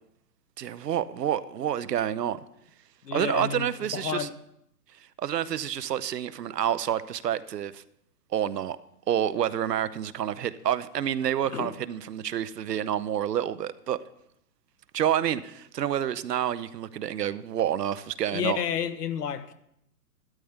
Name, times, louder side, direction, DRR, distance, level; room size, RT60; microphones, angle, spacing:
voice 1, 0.6-2.4 3.1-4.3 5.2-7.8 8.3-8.8 9.1-14.0 14.9-18.6, right 10 dB, 85° right, 0.8 m, -28 dB
voice 2, 3.0-4.3 11.5-11.7 18.3-19.5, left 8 dB, 80° left, 1.1 m, -31 dB
12.5 x 11.5 x 3.6 m
hypercardioid pair, 135°, 47 cm